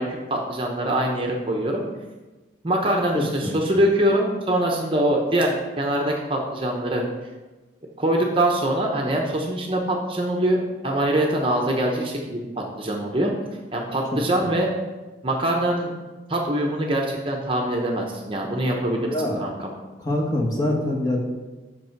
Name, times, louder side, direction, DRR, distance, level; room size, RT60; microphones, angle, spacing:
voice 1, 0.0-1.8 2.6-7.0 8.0-13.3 13.7-14.7 15.2-15.9 16.3-19.1 19.4-19.7, right 1 dB, 30° right, 0 dB, 0.8 m, -23 dB
voice 2, 3.1-3.5 19.0-19.4 20.0-21.2, left 1 dB, 20° left, -2 dB, 1.3 m, -24 dB
8.3 x 6.0 x 4.5 m, 1.2 s
head